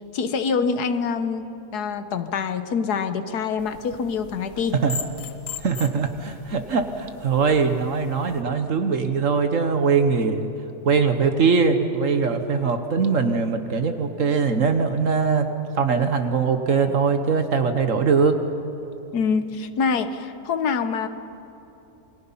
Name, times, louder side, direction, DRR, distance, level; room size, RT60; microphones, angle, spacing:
voice 1, 0.1-4.8 19.1-21.1, left 5 dB, 80° left, 10 dB, 1.5 m, -25 dB
sound 1, 3.6-8.4, left 6 dB, 60° left, 1.6 m, -39 dB
voice 2, 5.6-10.5 10.8-15.5 15.7-18.4, right 5 dB, 55° right, 7 dB, 1.4 m, -21 dB
28.0 x 22.5 x 5.7 m, 2.9 s
omnidirectional pair, 1.7 m